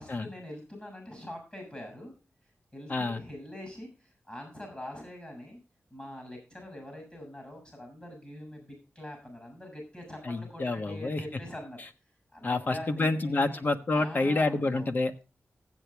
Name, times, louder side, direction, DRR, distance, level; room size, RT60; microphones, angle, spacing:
voice 1, 0.0-2.1 2.7-5.6 5.9-11.8 12.3-13.6 13.9-14.8, left 1 dB, 25° left, 3 dB, 7.1 m, -44 dB
voice 2, 2.9-3.2 10.2-11.4 12.4-15.2, left 2 dB, 40° left, 7 dB, 1.2 m, -28 dB
15.0 x 8.5 x 3.5 m, 0.32 s
wide cardioid pair, 135°, 5 cm